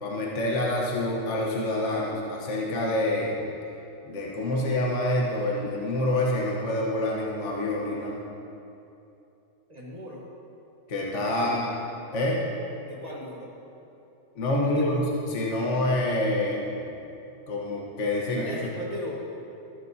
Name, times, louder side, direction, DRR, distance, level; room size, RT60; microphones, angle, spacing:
voice 1, 0.0-3.4 4.1-8.2 10.9-11.7 12.1-12.5 14.3-16.7 17.5-18.7, left 1 dB, 65° left, -3 dB, 1.4 m, -27 dB
voice 2, 9.7-10.2 11.3-11.7 12.9-13.5 14.6-14.9 18.2-19.1, equal, 35° right, -4 dB, 1.2 m, -38 dB
13.5 x 10.5 x 2.7 m, 2.8 s
omnidirectional pair, 1.3 m